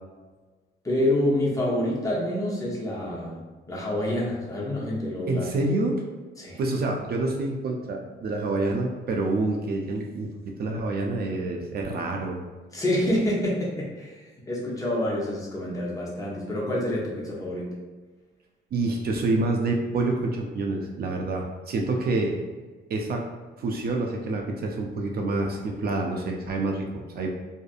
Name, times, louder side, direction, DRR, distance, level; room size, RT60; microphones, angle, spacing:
voice 1, 0.8-3.4 3.7-5.5 6.4-6.6 12.7-17.7, left 1 dB, 15° left, -5 dB, 0.8 m, -27 dB
voice 2, 5.3-5.9 6.6-12.4 18.7-22.4 22.9-23.2 23.6-27.3, right 2 dB, 50° right, 1 dB, 0.4 m, -27 dB
2.5 x 2.5 x 2.3 m, 1.3 s
cardioid pair, 90°, 20 cm